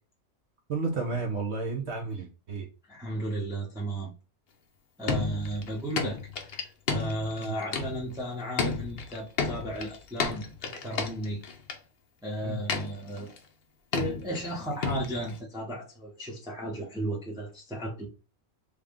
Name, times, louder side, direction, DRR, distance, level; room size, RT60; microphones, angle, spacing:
voice 1, 0.7-2.7 7.4-7.5 12.4-12.6, right 4 dB, 55° right, 1.0 m, -32 dB
voice 2, 2.9-4.1 5.0-11.4 12.2-13.3 13.9-18.1, right 1 dB, 5° right, 0.7 m, -34 dB
sound 1, 5.1-8.2 8.6-11.8 12.7-13.4 13.9-14.5 14.8-15.4, left 5 dB, 60° left, 0.6 m, -32 dB
3.5 x 2.3 x 3.6 m
omnidirectional pair, 1.5 m